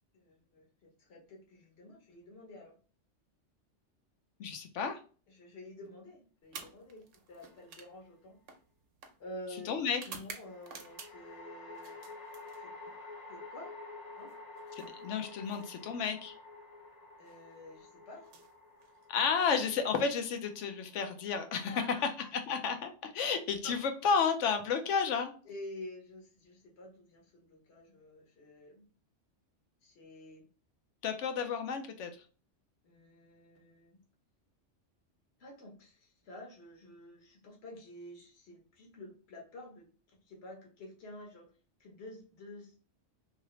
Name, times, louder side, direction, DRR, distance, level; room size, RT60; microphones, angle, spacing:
voice 1, 0.1-2.7 5.3-7.0 7.3-8.4 9.2-9.8 10.1-12.1 12.6-12.7 13.3-13.8 14.1-14.3 17.2-18.3 21.7-22.3 23.6-23.7 25.4-28.9 29.8-30.5 32.8-34.0 35.4-39.9 40.3-41.5 41.8-42.7, left 1 dB, 60° left, 0 dB, 1.2 m, -49 dB
voice 2, 4.4-5.0 9.7-10.0 14.7-16.3 19.1-21.8 22.3-25.3 31.0-32.1, left 6 dB, 80° left, 7 dB, 1.0 m, -32 dB
sound 1, 6.4-11.4 11.7-13.0 14.2-16.0 17.1-17.4 18.1-19.3, right 5 dB, 85° right, 1.0 m, -52 dB
sound 2, 7.3-8.0 10.4-21.8, left 3 dB, 40° left, 0.6 m, -50 dB
2.8 x 2.7 x 3.0 m, 0.38 s
omnidirectional pair, 1.2 m